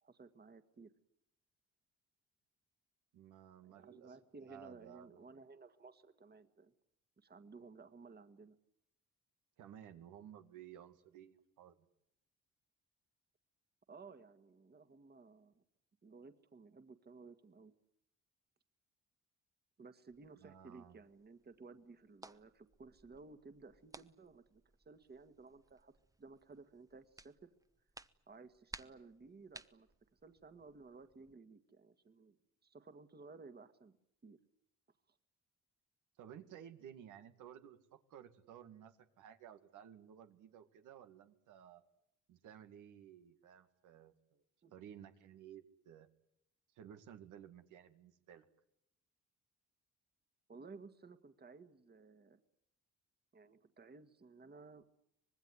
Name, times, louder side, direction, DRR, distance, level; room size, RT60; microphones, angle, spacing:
voice 1, 0.0-0.9 3.6-6.7 7.2-8.6 13.9-15.6 16.0-17.7 19.8-27.5 28.3-29.9 30.2-32.4 32.6-34.0 34.2-34.4 35.1-35.2 44.6-44.7 50.5-52.4 53.3-54.8, right 4 dB, 35° right, 9 dB, 1.9 m, -57 dB
voice 2, 3.1-4.2 4.4-5.4 9.6-11.9 20.4-21.0 36.2-41.8 42.3-44.4 44.7-46.1 46.7-48.5, right 9 dB, 90° right, 7 dB, 2.2 m, -56 dB
sound 1, 20.1-31.3, right 2 dB, 10° right, 1.0 m, -60 dB
25.0 x 20.0 x 9.8 m, 0.78 s
cardioid pair, 90°, 30 cm